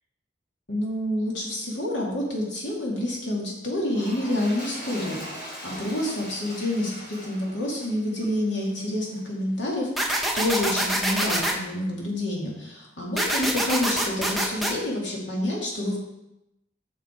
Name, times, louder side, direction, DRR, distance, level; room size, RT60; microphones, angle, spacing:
voice 1, 0.7-16.0, left 1 dB, 90° left, -3 dB, 2.5 m, -28 dB
Toilet flush, 3.8-9.3 10.0-10.1, equal, 60° left, 3.0 m, -41 dB
sound 1, 10.0-11.6 13.2-14.7, right 1 dB, ahead, 0.8 m, -25 dB
7.7 x 6.2 x 4.5 m, 0.91 s
head